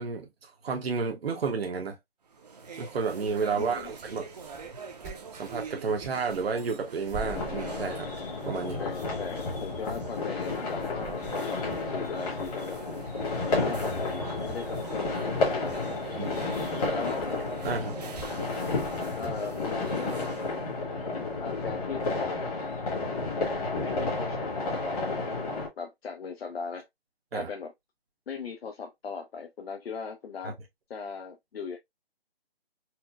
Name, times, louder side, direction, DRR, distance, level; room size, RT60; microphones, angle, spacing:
voice 1, 0.0-2.0 2.8-4.3 5.3-8.1 8.4-8.8 16.2-16.4 17.6-18.0 27.3-27.5 30.4-30.5, right 5 dB, 75° right, 0.9 m, -31 dB
sound 1, 2.3-20.7, right 5 dB, 40° right, 0.6 m, -46 dB
sound 2, 3.3-20.0, right 3 dB, 5° right, 0.7 m, -49 dB
voice 2, 3.6-3.9 8.8-12.8 13.6-16.0 16.3-16.6 16.9-17.3 19.2-20.3 21.4-22.5 23.8-26.9 27.3-27.7 28.3-30.6 30.9-31.8, left 5 dB, 75° left, 0.7 m, -39 dB
sound 3, 7.2-25.7, left 3 dB, 40° left, 1.3 m, -31 dB
4.4 x 2.0 x 2.2 m
hypercardioid pair, 160°, 31 cm